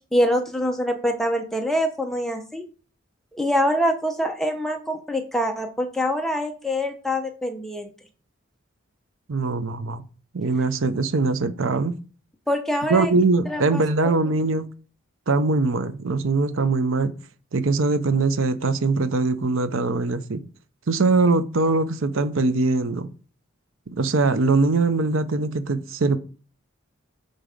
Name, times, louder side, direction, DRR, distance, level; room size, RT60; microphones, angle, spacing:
voice 1, 0.1-2.6 3.3-7.9 12.5-13.1 13.5-13.8, equal, ahead, 0.8 m, -24 dB
voice 2, 9.3-10.0 10.3-12.0 12.9-14.7 15.3-17.1 17.5-20.4 20.9-23.1 23.9-26.2, right 3 dB, 65° right, 0.6 m, -22 dB
8.8 x 3.9 x 5.1 m
head